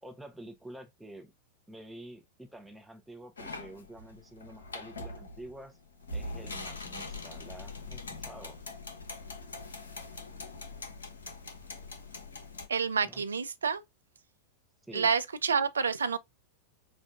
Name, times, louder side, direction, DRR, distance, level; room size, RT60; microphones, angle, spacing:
voice 1, 0.0-1.3 1.7-5.8 6.1-8.6 13.0-13.2 14.8-15.1, right 1 dB, 5° right, 0.8 m, -48 dB
sound 1, 3.4-12.7, left 2 dB, 70° left, 0.8 m, -42 dB
voice 2, 12.7-13.8 14.9-16.2, right 5 dB, 70° right, 0.4 m, -28 dB
5.1 x 2.5 x 2.4 m
figure-of-eight pair, 90°, 0 cm